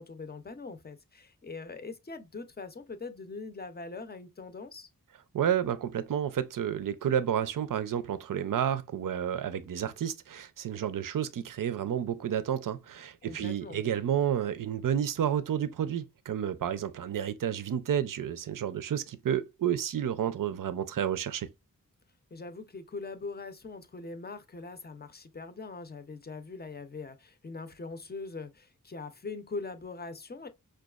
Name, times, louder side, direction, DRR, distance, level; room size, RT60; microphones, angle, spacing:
voice 1, 0.0-4.9 13.2-13.8 22.3-30.5, left 3 dB, 30° left, 0.5 m, -42 dB
voice 2, 5.3-21.5, right 9 dB, 65° right, 0.5 m, -30 dB
5.0 x 2.3 x 2.3 m
wide cardioid pair, 90°, 35 cm